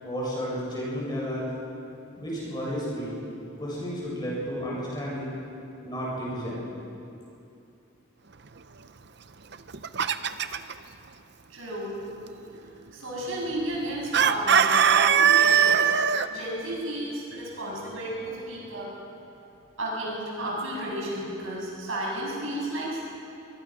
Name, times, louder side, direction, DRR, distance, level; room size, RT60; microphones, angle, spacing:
voice 1, 0.0-1.5 2.1-3.2 3.6-5.3 5.8-6.6, equal, 20° left, -5 dB, 7.5 m, -32 dB
Chicken rooster, 9.5-10.7 14.1-16.3, right 7 dB, 55° right, 0.7 m, -20 dB
voice 2, 11.5-12.0 12.9-19.0 19.8-23.0, right 1 dB, 80° right, -4 dB, 7.7 m, -32 dB
24.0 x 21.5 x 6.2 m, 2.7 s
head